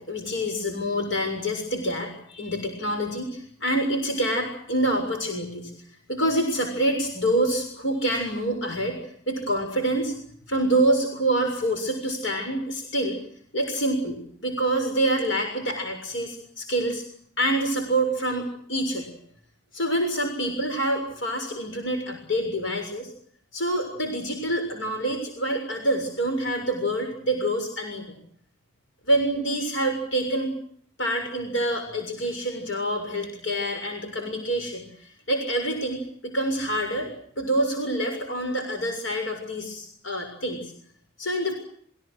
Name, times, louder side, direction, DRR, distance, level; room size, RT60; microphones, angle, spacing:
voice 1, 0.0-5.7 6.1-9.0 9.3-10.1 10.5-13.2 13.5-17.0 17.4-19.2 19.7-23.1 23.5-28.2 29.1-30.5 31.0-37.1 37.4-40.7 41.2-41.5, right 1 dB, 80° left, 4 dB, 6.9 m, -26 dB
29.5 x 24.5 x 6.5 m, 0.62 s
head